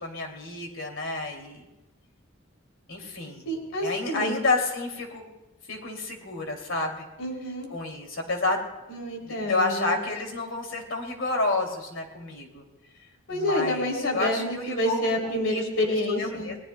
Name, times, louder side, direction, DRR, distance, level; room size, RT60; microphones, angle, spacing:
voice 1, 0.0-1.6 2.9-3.4 3.8-5.3 5.7-7.1 7.7-8.6 9.2-12.6 13.3-15.0 15.5-16.6, left 2 dB, 65° left, 2 dB, 2.6 m, -30 dB
voice 2, 3.4-4.4 7.2-7.7 8.9-10.0 13.3-16.5, left 1 dB, 90° left, 1 dB, 3.0 m, -28 dB
29.5 x 18.5 x 2.2 m, 1.0 s
head